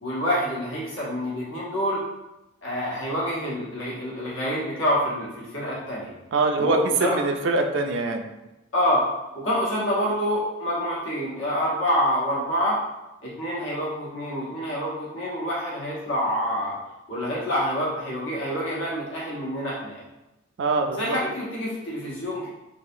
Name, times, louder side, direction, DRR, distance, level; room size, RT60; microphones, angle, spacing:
voice 1, 0.0-2.0 2.6-6.1 6.6-7.2 8.7-9.0 9.3-12.8 13.2-16.7 17.1-20.0 21.0-22.5, equal, 65° left, -6 dB, 1.1 m, -27 dB
voice 2, 6.3-8.3 20.6-21.2, right 3 dB, 60° right, 5 dB, 0.3 m, -23 dB
3.2 x 2.6 x 2.6 m, 1.0 s
head